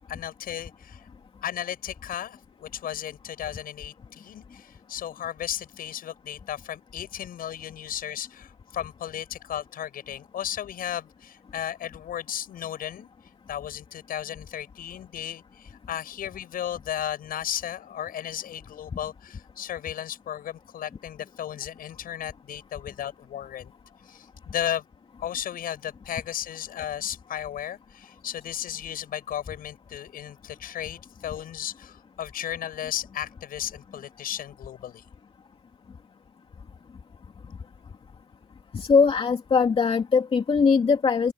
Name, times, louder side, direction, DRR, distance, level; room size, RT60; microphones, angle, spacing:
voice 1, 0.1-1.1 1.4-13.1 13.5-23.7 24.1-24.8 25.2-35.0, left 10 dB, 60° left, 7.2 m, -35 dB
voice 2, 38.7-41.3, left 5 dB, 35° left, 2.6 m, -21 dB
open air
cardioid pair, 110°, 17 cm